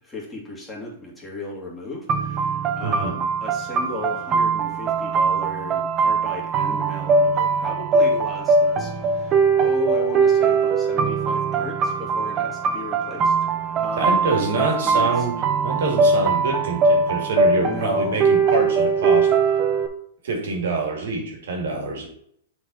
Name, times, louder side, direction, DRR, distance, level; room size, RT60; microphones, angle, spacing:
voice 1, 0.0-15.3 17.5-18.2, left 2 dB, 10° left, -4 dB, 2.2 m, -35 dB
sound 1, 2.1-19.9, right 4 dB, 25° right, 0.8 m, -21 dB
voice 2, 14.0-15.3 15.6-19.3 20.2-22.1, right 3 dB, 80° right, 1 dB, 2.4 m, -25 dB
7.0 x 4.7 x 4.0 m, 0.66 s
supercardioid pair, 150°, 0 cm